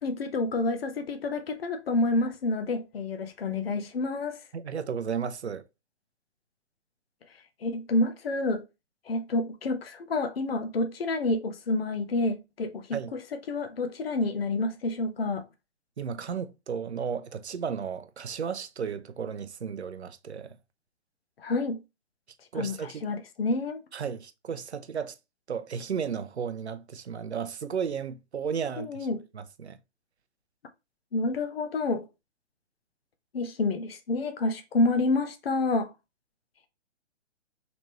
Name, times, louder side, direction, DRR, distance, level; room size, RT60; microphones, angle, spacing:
voice 1, 0.0-4.4 7.6-8.6 9.1-15.4 21.4-21.8 22.5-22.7 23.0-23.8 28.8-29.2 31.1-32.1 33.3-35.9, left 2 dB, 55° left, 0.8 m, -28 dB
voice 2, 4.5-5.7 12.9-13.1 16.0-20.6 22.5-23.1 23.9-25.2 25.5-29.1 29.3-29.8, right 7 dB, 60° right, 0.7 m, -34 dB
4.0 x 3.4 x 3.0 m
figure-of-eight pair, 130°, 37 cm